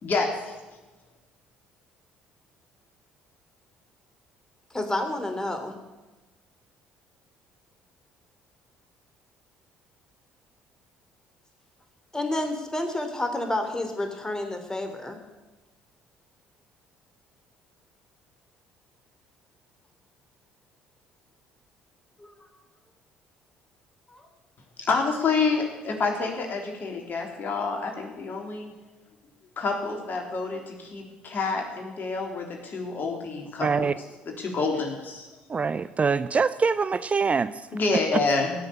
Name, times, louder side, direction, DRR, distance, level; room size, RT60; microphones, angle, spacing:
voice 1, 0.0-0.5 24.9-28.7 29.6-33.9 34.3-35.3 37.7-38.5, left 4 dB, 45° left, 1 dB, 3.4 m, -28 dB
voice 2, 4.7-5.7 12.1-15.2 22.2-22.5 24.1-24.2, left 1 dB, 15° left, 6 dB, 3.0 m, -30 dB
voice 3, 33.6-33.9 35.5-37.7, right 5 dB, 30° right, 14 dB, 0.5 m, -24 dB
16.5 x 6.8 x 8.6 m, 1.1 s
hypercardioid pair, 55°, 4 cm